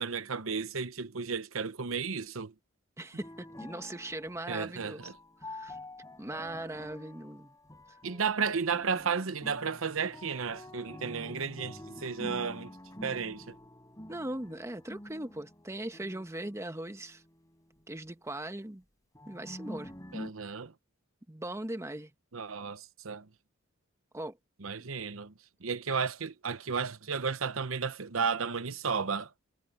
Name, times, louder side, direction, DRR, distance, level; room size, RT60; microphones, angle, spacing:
voice 1, 0.0-2.5 4.5-5.1 8.0-12.7 13.0-13.4 20.1-20.7 22.3-23.3 24.6-25.3 25.6-29.3, right 5 dB, 90° right, 0.9 m, -33 dB
voice 2, 3.0-5.1 5.4-5.8 6.2-7.5 14.1-17.2 17.9-18.8 19.2-19.9 21.3-22.1 24.1-24.4, right 1 dB, 15° right, 1.2 m, -39 dB
sound 1, 3.2-17.8 19.1-20.3, left 1 dB, 15° left, 5.2 m, -47 dB
head